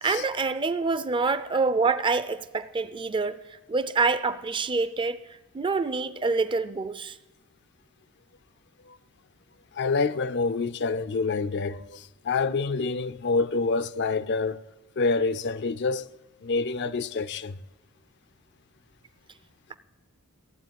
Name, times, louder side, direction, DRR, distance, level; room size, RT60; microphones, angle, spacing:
voice 1, 0.0-3.4 3.7-5.2 5.5-7.1 19.7-19.8, right 4 dB, 25° right, 0.4 m, -26 dB
voice 2, 9.8-14.6 15.0-16.1 16.4-17.6, left 4 dB, 55° left, 0.5 m, -27 dB
14.5 x 8.1 x 9.2 m
head